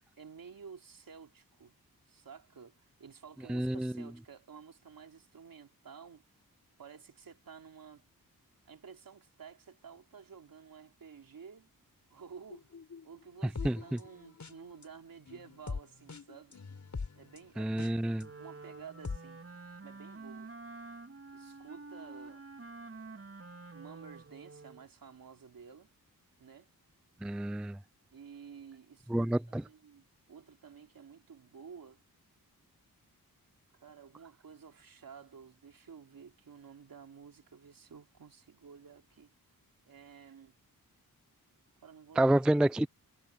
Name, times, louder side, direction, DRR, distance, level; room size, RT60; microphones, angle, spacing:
voice 1, 0.2-1.7 2.1-6.2 6.8-8.0 8.6-11.7 12.1-12.7 13.0-16.6 17.1-19.4 19.8-20.5 21.3-22.5 23.7-25.9 26.4-26.7 28.1-32.0 33.7-39.3 39.9-40.6 41.8-42.4, right 6 dB, 70° right, 3.1 m, -52 dB
voice 2, 3.5-3.9 13.6-14.0 17.6-18.2 27.2-27.8 29.1-29.6 42.2-42.9, right 1 dB, 5° right, 0.3 m, -28 dB
sound 1, 12.5-14.8 15.3-18.2 18.7-19.2, left 4 dB, 50° left, 5.0 m, -42 dB
Wind instrument woodwind instrument, 18.2-24.9, right 3 dB, 40° right, 3.4 m, -48 dB
cardioid pair, 70°, 36 cm